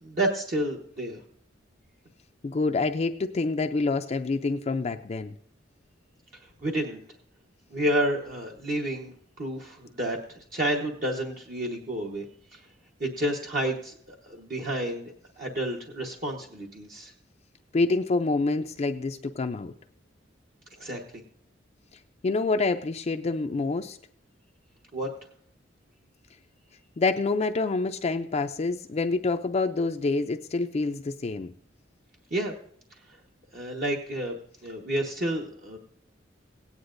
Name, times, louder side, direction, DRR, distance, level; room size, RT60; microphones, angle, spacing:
voice 1, 0.0-1.2 6.6-7.0 7.7-12.2 12.5-12.6 13.0-13.9 14.2-17.1 20.8-21.0 24.9-25.1 32.3-32.5 33.5-34.3 34.6-35.8, right 1 dB, 50° right, 0 dB, 1.0 m, -30 dB
voice 2, 2.4-5.3 17.7-19.7 22.2-24.0 27.0-31.5, left 3 dB, 35° left, 6 dB, 0.4 m, -27 dB
17.0 x 9.6 x 2.5 m, 0.63 s
head